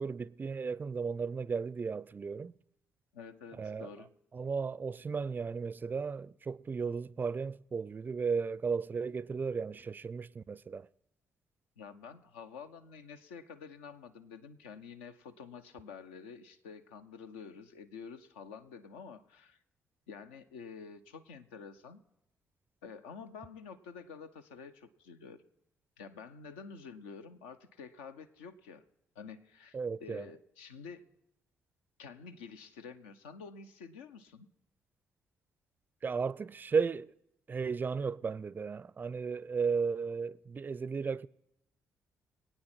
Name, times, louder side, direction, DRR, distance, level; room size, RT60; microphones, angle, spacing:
voice 1, 0.0-2.5 3.6-3.9 4.3-10.9 29.7-30.3 36.0-37.1 37.5-41.3, right 5 dB, 30° right, 0.4 m, -35 dB
voice 2, 3.1-4.1 11.8-19.6 20.1-22.0 22.8-25.4 26.0-28.8 29.1-31.1 32.0-34.5, left 5 dB, 75° left, 0.7 m, -49 dB
24.0 x 9.1 x 4.3 m
figure-of-eight pair, 40°, 7 cm